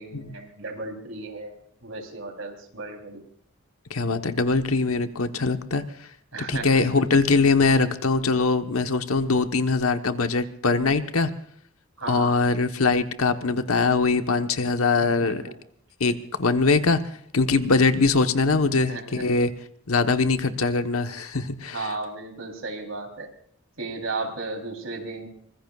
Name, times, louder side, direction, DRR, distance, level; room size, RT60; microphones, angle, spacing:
voice 1, 0.0-1.6 1.8-3.2 6.3-6.8 12.0-12.4 15.0-15.5 18.7-19.2 21.7-23.3 23.8-25.3, right 3 dB, 65° right, 4 dB, 3.6 m, -34 dB
voice 2, 3.9-5.8 6.5-11.3 12.1-15.4 16.0-17.0 17.3-19.5 19.9-21.9, left 4 dB, 80° left, 8 dB, 1.2 m, -22 dB
24.5 x 20.5 x 2.4 m, 0.65 s
head